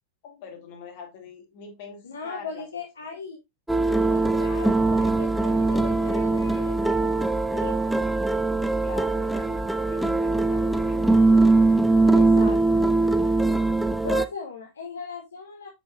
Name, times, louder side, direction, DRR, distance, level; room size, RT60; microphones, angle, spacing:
voice 1, 0.2-2.6 8.8-11.3, left 5 dB, 50° left, 4 dB, 2.2 m, -43 dB
voice 2, 2.0-3.4 3.9-7.9 12.1-12.9 13.2-13.5 14.0-15.7, left 4 dB, 70° left, 2 dB, 1.2 m, -38 dB
sound 1, 3.7-14.3, right 3 dB, 5° right, 0.5 m, -21 dB
7.9 x 5.5 x 2.4 m, 0.21 s
figure-of-eight pair, 90°, 0 cm